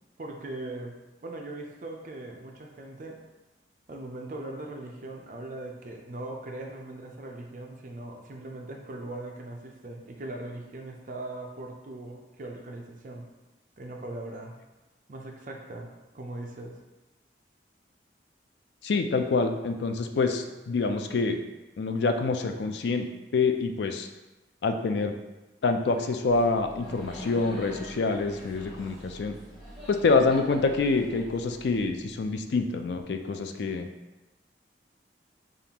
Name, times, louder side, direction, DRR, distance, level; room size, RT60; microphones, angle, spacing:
voice 1, 0.2-3.2 3.9-13.3 13.8-14.5 15.1-16.7, right 2 dB, 45° right, 1 dB, 0.5 m, -40 dB
voice 2, 18.8-21.4 21.8-24.1 24.6-25.1 25.6-29.3 29.9-33.9, left 4 dB, 70° left, 6 dB, 0.4 m, -26 dB
Laughter, 26.3-32.1, equal, ahead, 1.0 m, -44 dB
5.2 x 2.4 x 2.9 m, 1.1 s
head